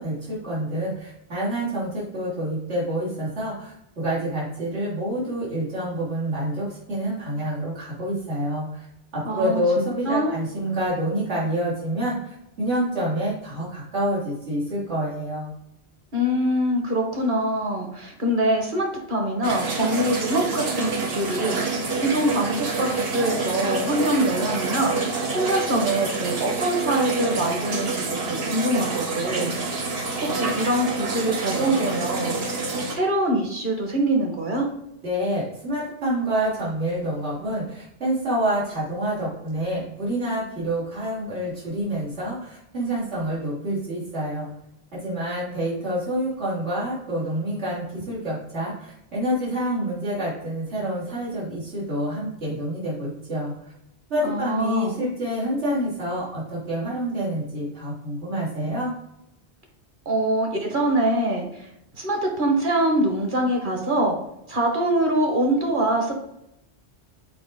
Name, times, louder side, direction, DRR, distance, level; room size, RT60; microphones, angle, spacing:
voice 1, 0.0-8.9 9.1-15.5 35.0-44.5 44.9-53.7 54.1-58.9, right 1 dB, 85° right, -8 dB, 3.0 m, -27 dB
voice 2, 9.2-10.3 16.1-29.8 30.2-32.4 32.9-34.7 54.2-55.0 60.0-61.7 62.0-64.2 64.5-66.2, right 1 dB, 45° right, 1 dB, 1.5 m, -24 dB
sound 1, 19.4-32.9, right 3 dB, 65° right, 1.2 m, -27 dB
6.9 x 4.8 x 3.8 m, 0.81 s
omnidirectional pair, 1.1 m